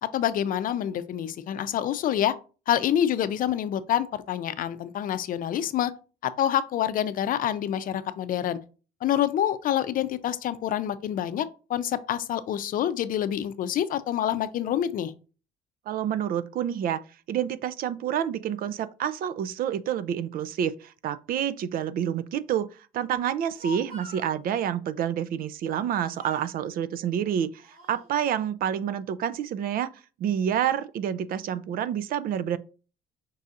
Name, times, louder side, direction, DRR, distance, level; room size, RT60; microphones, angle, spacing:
voice 1, 0.1-2.3 2.7-5.9 6.2-8.6 9.0-15.1, left 10 dB, 55° left, 0.5 m, -27 dB
voice 2, 15.9-17.0 17.3-22.7 22.9-29.9 30.2-32.6, right 9 dB, 60° right, 0.4 m, -28 dB
Speech, 23.3-24.3 25.7-25.9 26.2-26.6 27.3-28.1, left 2 dB, 35° right, 2.0 m, -44 dB
5.4 x 4.0 x 2.5 m
cardioid pair, 110°, 17 cm